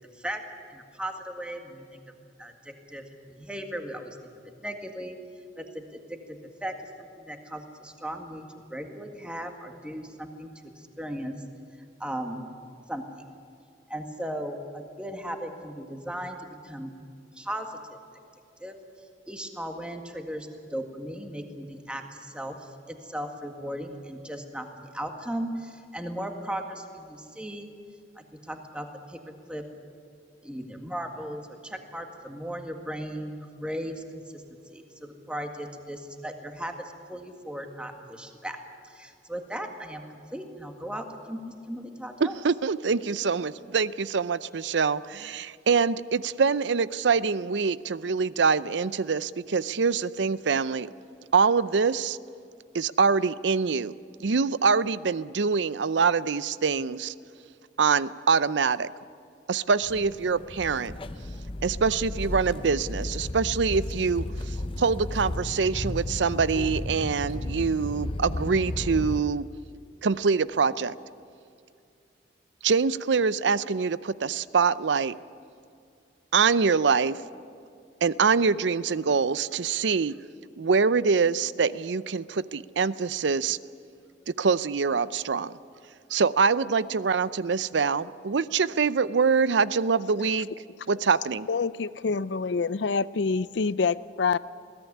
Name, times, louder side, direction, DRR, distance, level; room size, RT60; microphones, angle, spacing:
voice 1, 0.7-2.1 2.4-4.2 4.6-5.2 5.6-10.5 10.7-11.4 12.0-12.4 12.9-13.2 13.9-16.9 17.3-18.0 18.6-18.8 19.3-27.7 28.1-29.6 30.4-34.4 34.7-42.4, equal, 5° right, 4 dB, 1.8 m, -37 dB
voice 2, 42.2-50.9 51.3-52.2 52.7-53.9 54.2-57.1 57.8-58.9 59.5-60.9 61.6-69.4 70.0-70.9 72.6-75.1 76.3-77.2 78.0-80.2 80.6-83.6 84.4-85.6 86.1-90.5 90.9-91.5, right 5 dB, 80° right, 17 dB, 0.6 m, -24 dB
sound 1, 59.8-69.2, left 1 dB, 30° left, 0.6 m, -34 dB
voice 3, 91.5-94.4, left 4 dB, 75° left, 17 dB, 0.5 m, -26 dB
21.5 x 16.5 x 9.9 m, 2.4 s
head